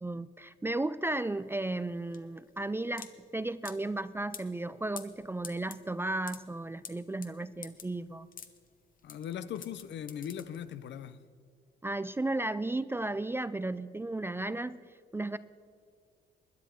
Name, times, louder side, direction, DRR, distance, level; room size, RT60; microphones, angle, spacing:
voice 1, 0.0-8.3 11.8-14.8 15.1-15.4, right 2 dB, 10° right, 15 dB, 0.3 m, -34 dB
sound 1, 1.1-11.0, left 6 dB, 45° left, 1.0 m, -49 dB
voice 2, 9.0-11.2, left 9 dB, 65° left, 14 dB, 0.6 m, -39 dB
20.5 x 10.0 x 4.6 m, 2.1 s
cardioid pair, 90°, 20 cm